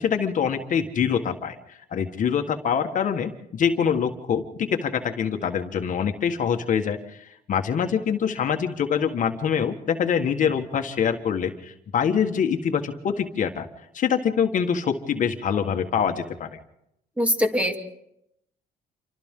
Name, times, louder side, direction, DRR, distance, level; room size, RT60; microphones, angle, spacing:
voice 1, 0.0-13.7 13.9-16.6, left 7 dB, 50° left, 6 dB, 1.6 m, -25 dB
voice 2, 17.2-17.7, left 1 dB, 10° right, 4 dB, 2.4 m, -22 dB
28.0 x 24.5 x 3.8 m, 0.78 s
cardioid pair, 110°, 17 cm